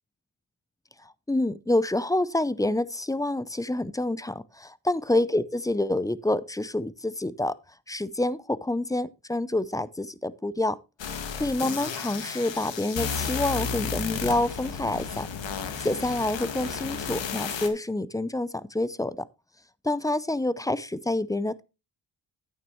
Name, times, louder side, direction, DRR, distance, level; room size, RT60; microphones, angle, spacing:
voice 1, 1.3-7.6 7.9-10.8 11.4-15.3 15.8-19.2 19.8-21.6, left 1 dB, 10° left, 0.5 m, -27 dB
sound 1, 11.0-17.7, left 6 dB, 65° left, 1.8 m, -33 dB
10.5 x 9.1 x 3.1 m
cardioid pair, 70°, 47 cm